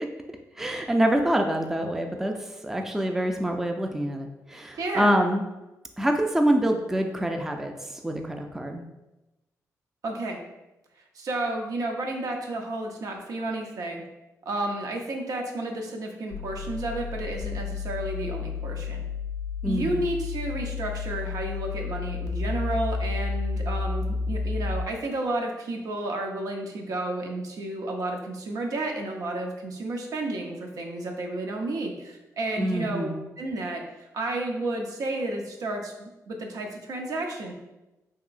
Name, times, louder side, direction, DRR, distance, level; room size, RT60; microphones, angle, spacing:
voice 1, 0.6-2.3 2.6-5.4 6.0-7.7 8.0-8.8 19.6-20.0 32.6-33.2, right 1 dB, 5° right, 4 dB, 0.3 m, -25 dB
voice 2, 4.8-5.1 10.0-10.4 11.1-14.0 14.5-19.0 19.7-33.1 33.4-37.5, right 2 dB, 70° right, 2 dB, 0.5 m, -31 dB
sound 1, 16.3-24.8, left 4 dB, 90° left, 0.3 m, -31 dB
3.0 x 2.8 x 2.5 m, 0.99 s
cardioid pair, 75°, 6 cm